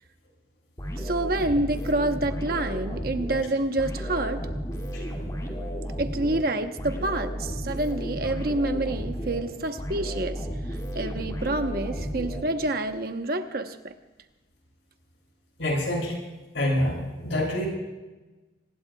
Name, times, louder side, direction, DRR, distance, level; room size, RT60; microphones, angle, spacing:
sound 1, 0.8-13.0, equal, 20° left, 2.4 m, -33 dB
voice 1, 1.0-4.5 6.0-10.4 10.9-13.9, right 2 dB, 50° right, 7 dB, 1.0 m, -28 dB
voice 2, 15.6-16.1 16.5-17.7, left 1 dB, 80° left, -1 dB, 7.2 m, -26 dB
25.5 x 20.0 x 2.4 m, 1.1 s
head